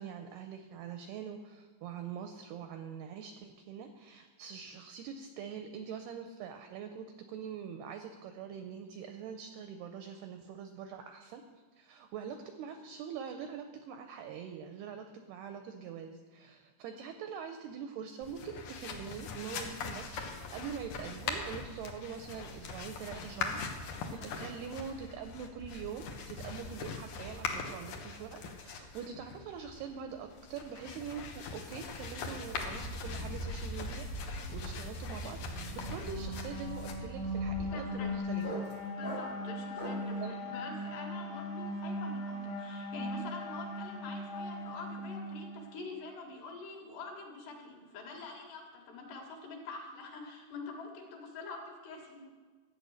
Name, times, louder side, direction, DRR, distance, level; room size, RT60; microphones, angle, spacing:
voice 1, 0.0-11.4 11.8-38.6 40.2-40.3, right 7 dB, 85° right, 6 dB, 2.3 m, -44 dB
sound 1, 18.2-38.1, left 3 dB, 85° left, 1.7 m, -41 dB
sound 2, 34.1-40.2, equal, 15° right, 0.8 m, -46 dB
sound 3, 35.4-45.8, left 1 dB, 25° left, 1.1 m, -39 dB
voice 2, 37.7-38.1 39.0-52.2, left 3 dB, 65° left, -1 dB, 3.7 m, -46 dB
13.0 x 8.4 x 6.4 m, 1.5 s
omnidirectional pair, 5.4 m